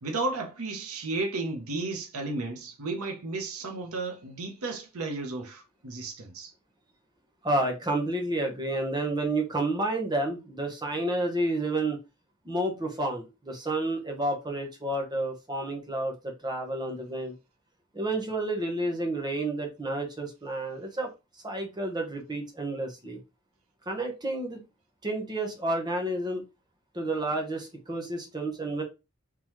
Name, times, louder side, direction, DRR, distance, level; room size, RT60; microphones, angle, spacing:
voice 1, 0.0-6.5, right 3 dB, 85° right, 0.8 m, -33 dB
voice 2, 7.4-12.0 12.4-17.3 17.9-21.1 21.3-23.2 23.9-24.6 25.0-26.4 26.9-28.8, right 2 dB, 20° right, 0.9 m, -30 dB
3.7 x 2.9 x 3.0 m
head